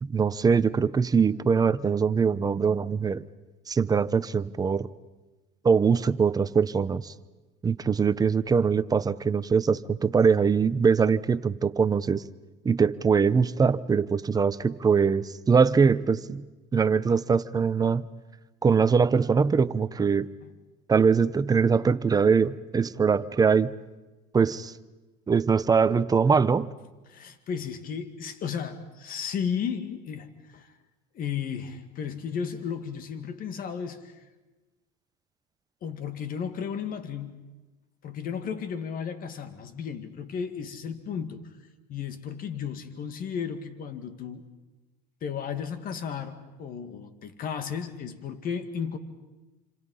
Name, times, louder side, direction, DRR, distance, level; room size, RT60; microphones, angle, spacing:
voice 1, 0.0-3.2 3.7-4.9 5.6-7.1 7.6-12.2 12.6-18.1 18.6-20.3 20.9-23.7 24.3-24.7 25.3-26.7, right 5 dB, 20° right, 14 dB, 0.8 m, -22 dB
voice 2, 27.1-30.7 31.1-34.2 35.8-37.5 38.0-41.4 41.9-44.5 45.2-49.0, left 7 dB, 45° left, 10 dB, 2.3 m, -34 dB
27.0 x 26.5 x 5.6 m, 1.2 s
supercardioid pair, 115°, 20 cm